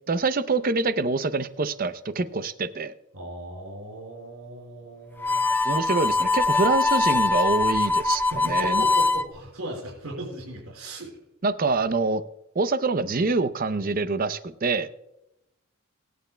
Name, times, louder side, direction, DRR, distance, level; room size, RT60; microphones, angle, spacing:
voice 1, 0.1-2.9 5.6-8.8 11.4-12.2 12.5-14.9, right 3 dB, 40° right, 12 dB, 0.6 m, -25 dB
voice 2, 3.1-5.5 8.3-11.1, right 1 dB, 85° right, -2 dB, 4.8 m, -37 dB
Harmonica, 5.2-9.3, left 3 dB, 10° left, 0.4 m, -22 dB
24.5 x 9.2 x 2.2 m, 0.85 s
head